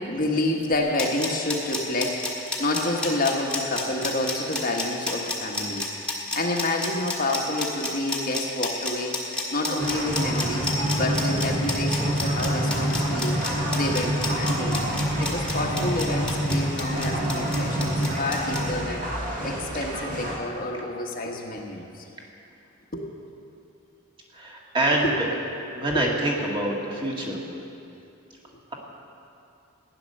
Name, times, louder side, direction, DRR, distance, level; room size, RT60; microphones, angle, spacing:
voice 1, 0.0-10.7 11.0-19.0 19.4-22.1 22.9-23.1 25.0-25.1 25.9-26.0, left 2 dB, 45° left, 0 dB, 1.3 m, -29 dB
sound 1, 0.8-18.6, left 2 dB, 5° left, 1.7 m, -30 dB
sound 2, 9.8-20.4, equal, 40° right, 1.9 m, -27 dB
voice 2, 24.3-25.3 25.7-27.4, right 1 dB, 25° right, -2 dB, 1.8 m, -25 dB
15.5 x 9.8 x 6.6 m, 2.7 s
head